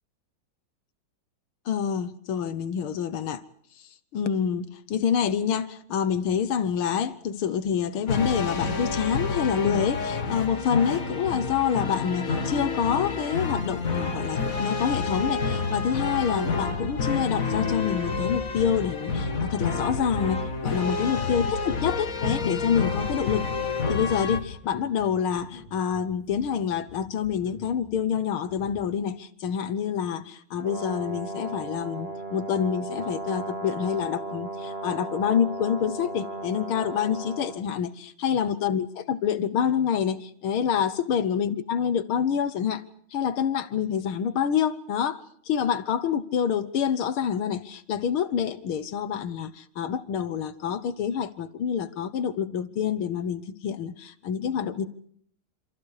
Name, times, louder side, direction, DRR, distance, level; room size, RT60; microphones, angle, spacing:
voice 1, 1.7-3.4 4.1-23.5 23.9-42.8 43.1-54.9, left 8 dB, 85° left, 2.1 m, -27 dB
sound 1, 8.1-24.4, left 4 dB, 40° left, 2.5 m, -29 dB
sound 2, 22.7-29.1, left 1 dB, 60° left, 3.3 m, -49 dB
Brass instrument, 30.6-37.6, right 2 dB, 30° right, 2.5 m, -36 dB
28.0 x 26.5 x 4.9 m
omnidirectional pair, 2.3 m